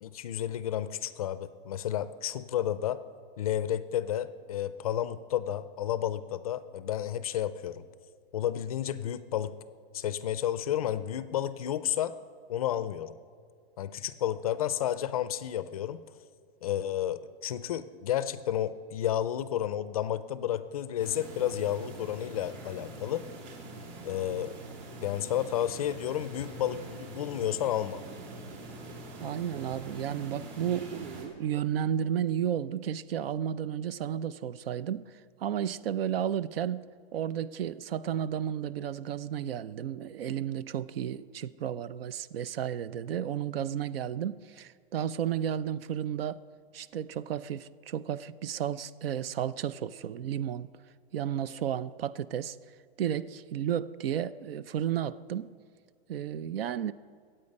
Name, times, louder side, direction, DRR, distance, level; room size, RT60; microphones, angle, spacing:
voice 1, 0.0-3.0 3.4-7.8 8.3-9.5 9.9-12.1 12.5-13.1 13.8-16.0 16.6-23.2 24.0-24.5 25.0-28.0, left 11 dB, 35° left, 0.4 m, -31 dB
sound 1, 21.0-31.3, right 2 dB, 45° right, 3.1 m, -44 dB
voice 2, 29.2-35.1 35.4-46.4 46.7-50.7 51.1-52.6 53.0-55.5 56.1-56.9, right 9 dB, 65° right, 0.6 m, -33 dB
22.0 x 8.8 x 5.3 m
hypercardioid pair, 165°, 31 cm